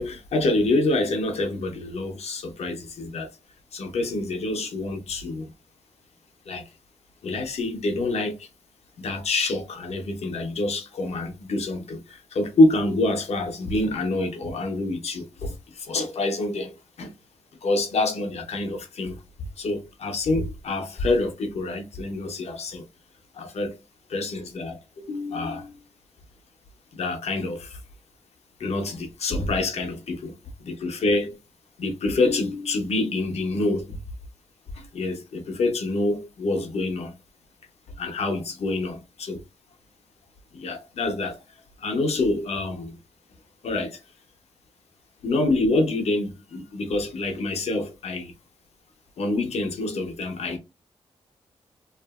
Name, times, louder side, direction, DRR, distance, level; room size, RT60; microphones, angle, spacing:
voice 1, 0.0-3.3 3.7-5.5 6.5-6.7 7.2-8.5 9.0-17.1 17.6-19.2 19.6-22.9 23.3-23.8 24.1-25.8 26.9-27.8 28.6-30.3 30.6-31.4 31.8-34.0 34.7-37.1 38.0-39.4 40.5-41.4 41.8-43.0 43.6-44.0 45.2-48.3 49.2-50.6, left 2 dB, 70° left, 0.7 m, -26 dB
2.8 x 2.5 x 2.3 m
wide cardioid pair, 170°, 11 cm